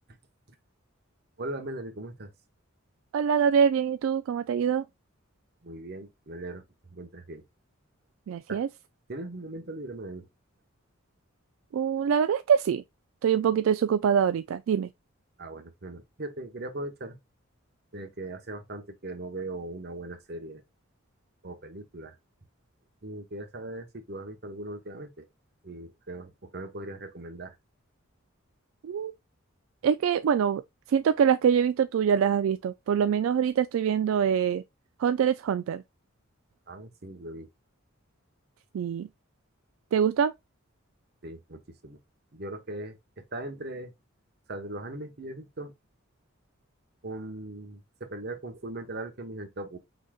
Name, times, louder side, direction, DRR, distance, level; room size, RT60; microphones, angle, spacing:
voice 1, 1.4-2.3 5.6-6.6 6.9-7.4 8.5-8.6 9.1-10.3 15.4-17.2 17.9-20.6 21.4-22.1 23.0-25.3 25.6-27.5 36.7-37.5 41.2-42.0 42.3-43.9 44.5-45.7 47.0-49.8, right 2 dB, 50° right, 1.1 m, -39 dB
voice 2, 3.1-4.9 8.3-8.7 11.7-12.8 13.2-14.9 28.8-29.1 29.8-30.6 30.9-34.6 35.0-35.8 38.7-39.1 39.9-40.3, right 7 dB, 75° right, 0.3 m, -24 dB
5.0 x 4.0 x 2.3 m
head